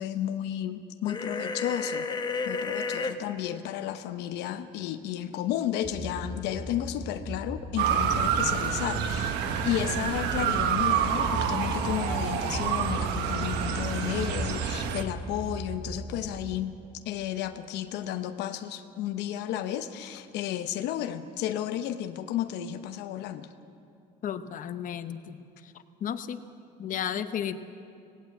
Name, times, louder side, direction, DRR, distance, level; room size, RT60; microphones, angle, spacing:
voice 1, 0.0-2.1 2.5-16.7 17.0-23.5, left 11 dB, 90° left, 9 dB, 0.8 m, -32 dB
sound 1, 1.0-3.1, left 4 dB, 25° left, 1.1 m, -31 dB
sound 2, 5.8-16.4, right 1 dB, 40° right, 2.6 m, -38 dB
Motor vehicle (road) / Siren, 7.8-15.0, right 8 dB, 90° right, 1.2 m, -28 dB
voice 2, 24.2-25.4 26.0-26.4 26.8-27.6, left 9 dB, 50° left, 10 dB, 0.9 m, -33 dB
18.0 x 17.0 x 8.4 m, 2.5 s
cardioid pair, 110°, 17 cm